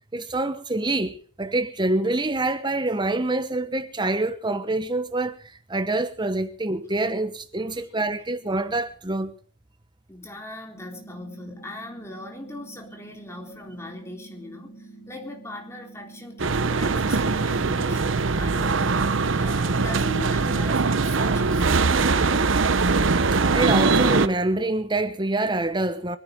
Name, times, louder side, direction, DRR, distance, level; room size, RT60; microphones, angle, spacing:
voice 1, 0.1-5.4 5.7-9.3 23.5-26.2, right 2 dB, 25° right, 1.1 m, -26 dB
voice 2, 10.1-22.8, left 1 dB, 15° left, 4.0 m, -40 dB
sound 1, 10.7-20.7, right 3 dB, 85° left, 5.6 m, -46 dB
sound 2, 16.4-24.3, right 4 dB, 80° right, 0.9 m, -22 dB
24.5 x 9.8 x 5.3 m
head